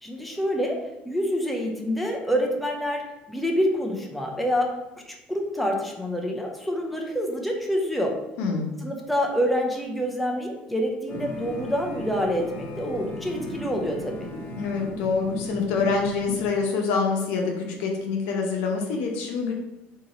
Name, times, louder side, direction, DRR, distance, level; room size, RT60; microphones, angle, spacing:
voice 1, 0.0-0.8 1.1-3.0 3.3-4.7 5.1-8.1 8.8-14.3, equal, ahead, 0 dB, 0.5 m, -27 dB
voice 2, 8.4-8.7 14.6-19.5, left 4 dB, 85° left, 1 dB, 0.8 m, -26 dB
sound 1, 11.1-16.5, left 2 dB, 50° left, 0.8 m, -36 dB
3.1 x 2.7 x 3.8 m, 0.95 s
cardioid pair, 150°, 4 cm